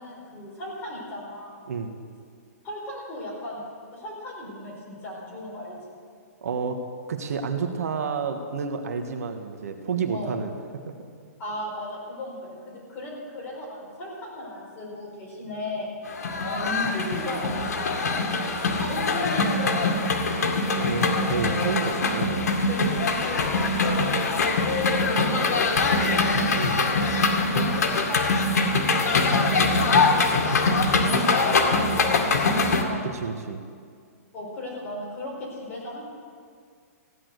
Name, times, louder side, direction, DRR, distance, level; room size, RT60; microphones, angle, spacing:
voice 1, 0.0-1.6 2.6-3.6 3.9-6.0 10.1-10.4 11.4-15.9 16.5-18.2 18.6-20.4 22.7-26.4 27.5-28.6 29.0-33.1 34.3-36.0, left 1 dB, 20° left, -5 dB, 4.8 m, -36 dB
voice 2, 6.4-6.8 7.1-10.5 10.9-11.1 20.8-22.5 26.6-26.8 33.1-33.6, right 5 dB, 65° right, 6 dB, 1.4 m, -30 dB
sound 1, 16.1-32.8, left 3 dB, 75° left, 2.2 m, -23 dB
15.5 x 10.0 x 7.9 m, 2.1 s
hypercardioid pair, 170°, 9 cm